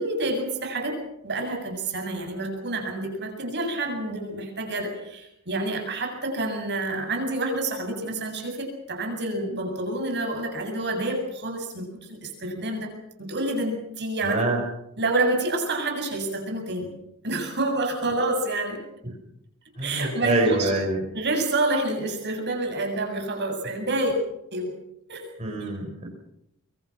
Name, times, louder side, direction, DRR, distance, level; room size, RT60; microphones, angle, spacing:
voice 1, 0.0-12.9 13.2-14.5 15.0-17.0 17.2-18.8 19.8-20.7 21.1-24.2 24.5-24.8 25.1-25.3 25.6-25.7, right 2 dB, 50° right, 4 dB, 7.6 m, -28 dB
voice 2, 14.2-14.6 19.8-21.0 25.4-26.1, right 2 dB, 35° right, -1 dB, 5.1 m, -25 dB
24.5 x 24.0 x 6.0 m, 0.78 s
head